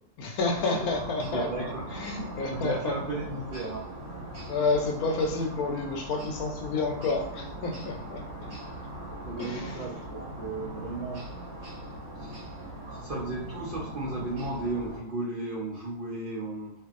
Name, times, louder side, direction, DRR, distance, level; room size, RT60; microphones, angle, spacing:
voice 1, 0.2-1.5 1.9-3.0 4.5-8.2 9.4-9.8, left 3 dB, 75° left, 2 dB, 1.0 m, -29 dB
sound 1, 0.5-15.0, right 1 dB, 55° right, 1.0 m, -40 dB
voice 2, 1.3-2.2 2.5-3.8 8.4-8.5 9.3-11.3 12.1-12.4 12.9-16.7, right 2 dB, 75° right, -5 dB, 0.4 m, -35 dB
2.6 x 2.5 x 2.4 m, 0.74 s
omnidirectional pair, 1.6 m